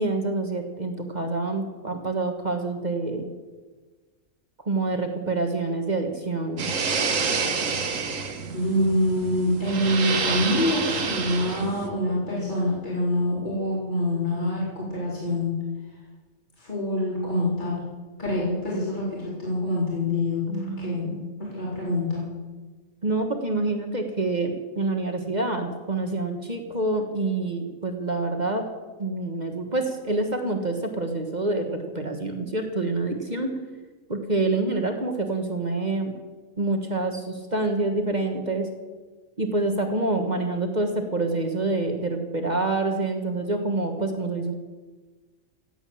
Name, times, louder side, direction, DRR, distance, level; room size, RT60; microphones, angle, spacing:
voice 1, 0.0-3.3 4.6-6.7 20.5-21.6 23.0-28.7 29.0-33.6 34.1-36.1 36.6-38.7 39.4-44.5, right 2 dB, 30° right, 4 dB, 1.6 m, -27 dB
sound 1, 6.6-11.9, right 5 dB, 70° right, 1.7 m, -28 dB
voice 2, 8.5-15.5 16.6-17.8 18.2-22.3, left 1 dB, 35° left, -6 dB, 4.0 m, -26 dB
16.5 x 8.1 x 8.7 m, 1.3 s
omnidirectional pair, 1.4 m